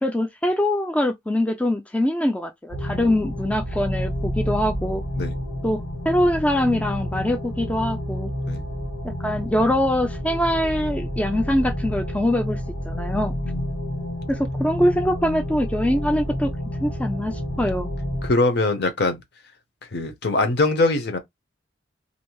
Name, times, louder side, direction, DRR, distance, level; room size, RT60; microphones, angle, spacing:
voice 1, 0.0-5.0 5.6-5.8 6.1-8.3 9.2-12.6 12.9-13.3 14.3-16.5 16.8-17.9, left 1 dB, 5° left, 0.3 m, -23 dB
sound 1, 2.7-18.3, equal, 85° left, 1.5 m, -29 dB
voice 2, 18.2-19.2 19.9-21.2, left 2 dB, 60° left, 0.7 m, -22 dB
2.6 x 2.0 x 2.9 m
head